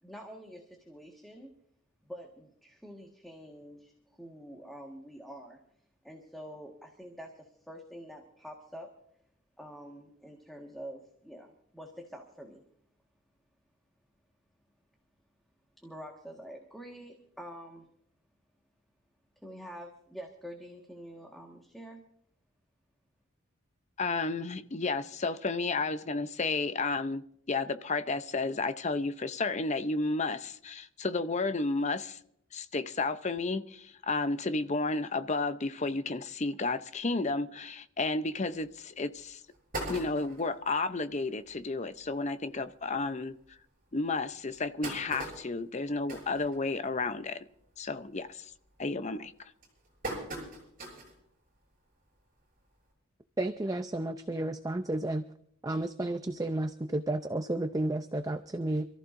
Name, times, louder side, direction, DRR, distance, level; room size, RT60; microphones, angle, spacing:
voice 1, 0.0-1.5 2.0-5.6 6.0-8.9 9.6-12.6 15.8-17.9 19.4-22.0, equal, ahead, 1.6 m, -47 dB
voice 2, 24.0-32.2 32.5-39.4 39.9-43.4 43.9-47.5 47.8-48.4 48.8-49.3, left 3 dB, 30° left, 0.6 m, -32 dB
sound 1, 38.6-38.7 39.2-39.3 39.5-40.6 41.1-41.2 41.5-41.6 41.9-42.1 42.8-42.9 43.4-43.5 44.3-47.1 47.5-47.8 48.2-48.6 49.2-51.2 51.6-51.7 52.9-53.0, right 1 dB, 40° right, 6.6 m, -40 dB
voice 3, 53.4-55.2 55.6-58.9, right 1 dB, 15° right, 0.5 m, -32 dB
28.0 x 14.5 x 2.6 m
head